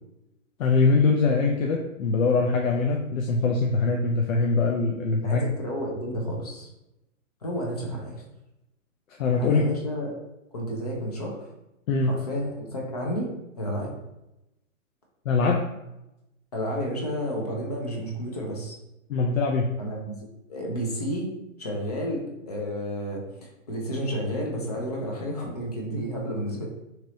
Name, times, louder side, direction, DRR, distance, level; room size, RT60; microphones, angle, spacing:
voice 1, 0.6-5.4 9.2-9.6 11.9-12.2 15.3-15.6 19.1-19.7, left 4 dB, 80° left, 1 dB, 0.6 m, -22 dB
voice 2, 5.2-6.7 7.4-8.2 9.4-10.1 10.5-11.5 12.0-13.3 13.6-13.9 16.5-18.8 19.8-20.2 20.5-21.3 21.6-26.6, equal, 30° left, -1 dB, 0.5 m, -31 dB
2.9 x 2.6 x 3.0 m, 0.92 s
hypercardioid pair, 165°, 39 cm